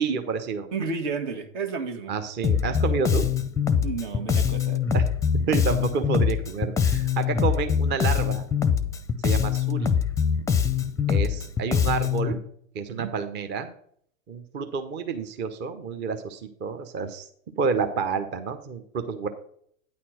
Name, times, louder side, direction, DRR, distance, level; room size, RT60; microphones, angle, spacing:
voice 1, 0.0-0.7 2.1-3.2 4.9-5.1 5.5-8.5 9.2-9.9 11.1-12.4 12.7-13.7 14.3-17.3 17.6-19.3, right 5 dB, 25° right, 8 dB, 0.8 m, -29 dB
voice 2, 0.7-2.1 3.8-4.8 12.9-13.1, right 5 dB, 60° right, 6 dB, 1.8 m, -31 dB
Bass guitar, 2.4-12.3, left 7 dB, 10° left, 0.6 m, -23 dB
9.4 x 4.3 x 6.3 m, 0.64 s
figure-of-eight pair, 100°, 40 cm